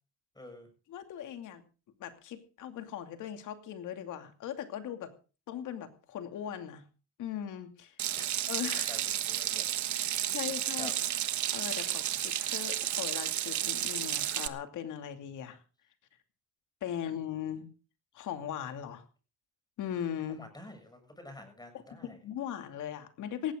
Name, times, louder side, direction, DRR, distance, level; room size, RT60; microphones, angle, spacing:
voice 1, 0.4-0.7 8.2-8.3 8.9-10.2 10.7-10.9 20.3-22.2, left 1 dB, 15° left, 7 dB, 7.2 m, -49 dB
voice 2, 0.9-1.6 2.0-5.1 5.5-6.8 7.2-8.0 8.5-8.9 10.3-10.9 11.5-15.6 16.8-17.7 18.1-19.0 19.8-20.4 22.0-23.5, left 9 dB, 80° left, 7 dB, 2.6 m, -39 dB
Water tap faucet / Sink (filling or washing), 8.0-14.5, right 12 dB, 70° right, 1.3 m, -32 dB
18.5 x 16.0 x 3.8 m, 0.35 s
cardioid pair, 90°, 30 cm